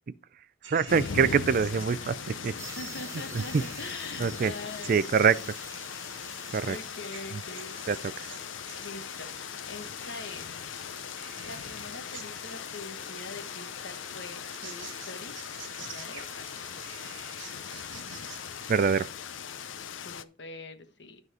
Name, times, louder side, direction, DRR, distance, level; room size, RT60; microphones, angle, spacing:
sound 1, 0.6-19.1, right 7 dB, 80° right, 1.5 m, -49 dB
voice 1, 0.7-2.5 3.3-3.6 4.2-4.5 4.9-5.4 6.5-6.8 7.9-8.3 18.7-19.1, right 6 dB, 45° right, 0.4 m, -25 dB
sound 2, 0.9-20.2, left 7 dB, 80° left, 0.6 m, -40 dB
voice 2, 2.6-5.1 5.4-5.5 6.3-8.3 8.8-9.4 9.7-10.6 11.4-15.3 15.8-16.7 19.7-21.2, left 3 dB, 65° left, 1.2 m, -44 dB
sound 3, 2.6-8.2, right 4 dB, 15° right, 1.1 m, -48 dB
12.0 x 4.1 x 4.7 m
head